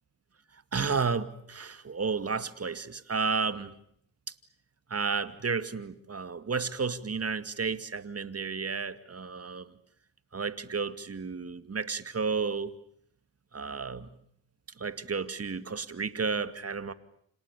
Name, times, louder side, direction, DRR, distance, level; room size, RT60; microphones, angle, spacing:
voice 1, 0.7-3.7 4.9-9.7 10.3-12.7 13.5-14.1 14.8-16.9, right 5 dB, 35° right, 2.3 m, -32 dB
29.5 x 27.0 x 6.9 m
supercardioid pair, 55°, 43 cm